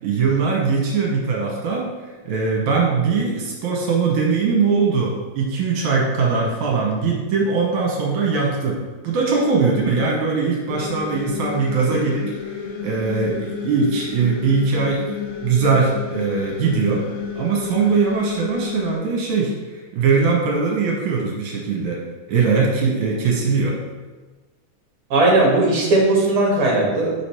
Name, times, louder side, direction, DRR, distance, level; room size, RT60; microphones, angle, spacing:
voice 1, 0.0-1.9 2.3-15.2 15.4-17.1 17.4-22.0 22.3-23.8, right 4 dB, 70° right, -2 dB, 2.3 m, -21 dB
sound 1, 10.7-19.0, left 5 dB, 75° left, 2.3 m, -31 dB
voice 2, 25.1-27.1, right 2 dB, 50° right, -3 dB, 2.0 m, -17 dB
5.2 x 5.0 x 4.4 m, 1.3 s
omnidirectional pair, 3.8 m